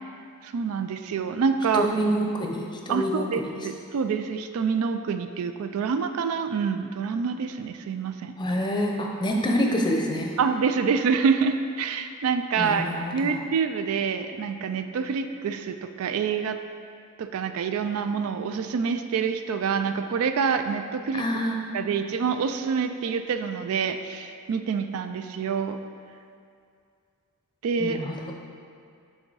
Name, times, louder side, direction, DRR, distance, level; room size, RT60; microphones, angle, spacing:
voice 1, 0.4-1.9 2.9-8.3 10.4-16.6 17.2-21.2 21.7-25.8 27.6-28.0, right 6 dB, 70° right, 8 dB, 0.3 m, -26 dB
voice 2, 1.7-3.5 8.4-10.3 12.6-13.4 21.1-21.6 27.8-28.3, equal, 20° left, 0 dB, 0.6 m, -27 dB
6.4 x 3.7 x 4.7 m, 2.3 s
head